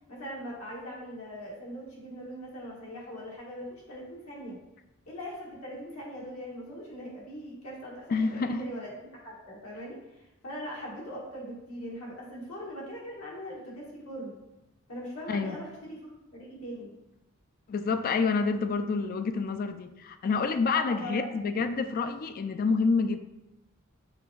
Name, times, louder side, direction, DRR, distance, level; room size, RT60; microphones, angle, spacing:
voice 1, 0.1-4.6 5.1-14.3 14.9-16.9 20.7-21.3, equal, 80° left, -4 dB, 1.4 m, -41 dB
voice 2, 8.1-8.6 15.3-15.6 17.7-23.2, left 4 dB, 45° left, 9 dB, 0.3 m, -28 dB
6.9 x 3.3 x 2.3 m, 0.96 s
head